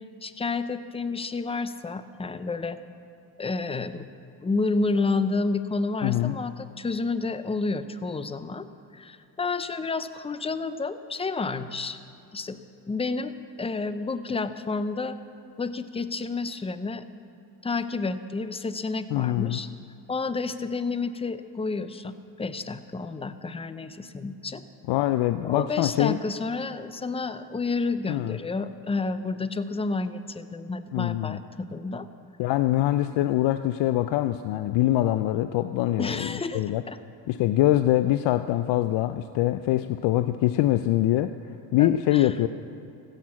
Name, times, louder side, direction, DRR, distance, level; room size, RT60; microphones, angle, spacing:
voice 1, 0.2-2.8 3.4-4.1 4.4-8.7 8.9-12.0 12.3-12.6 12.9-15.2 15.6-17.0 17.6-19.7 20.1-24.6 25.4-32.1 36.0-37.0 41.8-42.3, left 3 dB, 15° left, 12 dB, 0.6 m, -30 dB
voice 2, 6.0-6.4 19.1-19.6 24.9-26.2 28.1-28.4 30.9-31.4 32.4-36.8 37.3-41.3 41.7-42.5, left 14 dB, 65° left, 11 dB, 0.5 m, -24 dB
15.0 x 6.6 x 7.3 m, 2.5 s
supercardioid pair, 70°, 46 cm